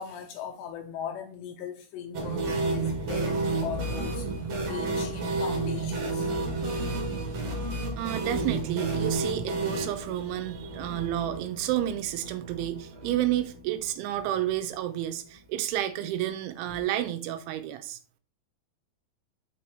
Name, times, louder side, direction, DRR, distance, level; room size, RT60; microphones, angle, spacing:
voice 1, 0.0-4.3 4.7-6.3, left 8 dB, 80° left, 2.6 m, -38 dB
sound 1, 2.1-13.9 14.1-14.2 14.5-14.6 16.7-16.8, right 3 dB, 50° right, 2.0 m, -31 dB
voice 2, 8.0-18.0, right 12 dB, 85° right, 3.1 m, -30 dB
6.1 x 5.6 x 4.5 m
omnidirectional pair, 5.5 m